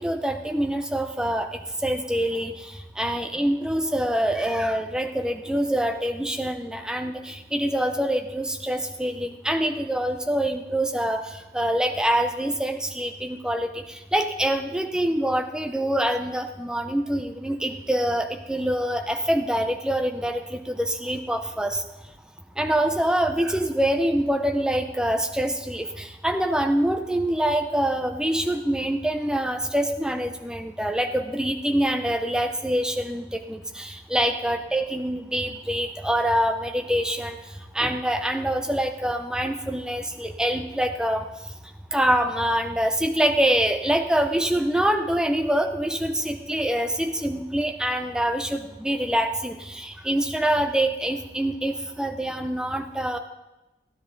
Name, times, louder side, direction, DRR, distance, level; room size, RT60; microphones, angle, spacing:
voice 1, 0.0-21.8 22.6-37.4 37.7-41.3 41.9-53.2, right 1 dB, 5° right, 6 dB, 0.6 m, -25 dB
15.0 x 10.0 x 3.9 m, 1.0 s
head